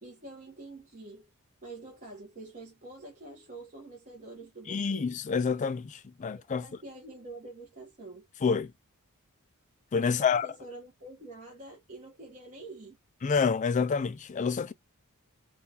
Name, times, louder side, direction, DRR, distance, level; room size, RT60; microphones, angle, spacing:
voice 1, 0.0-1.3 1.6-5.1 6.4-8.3 10.0-13.0, right 2 dB, 35° right, 1.0 m, -46 dB
voice 2, 4.7-6.6 8.4-8.7 9.9-10.5 13.2-14.7, left 5 dB, 35° left, 0.3 m, -28 dB
3.6 x 2.3 x 2.8 m
head